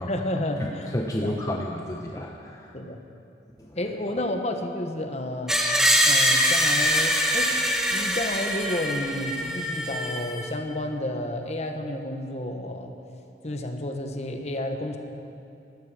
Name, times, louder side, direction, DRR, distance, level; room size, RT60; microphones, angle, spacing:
voice 1, 0.0-0.9 1.2-1.3 2.7-3.0 3.8-5.6 6.0-12.9 13.4-15.0, left 1 dB, 35° left, 5 dB, 1.1 m, -31 dB
voice 2, 0.6-2.7 3.6-3.8, left 1 dB, 20° left, 0 dB, 0.7 m, -31 dB
Screech, 5.5-10.4, equal, 5° right, 1.2 m, -23 dB
19.5 x 13.0 x 4.9 m, 2.6 s
head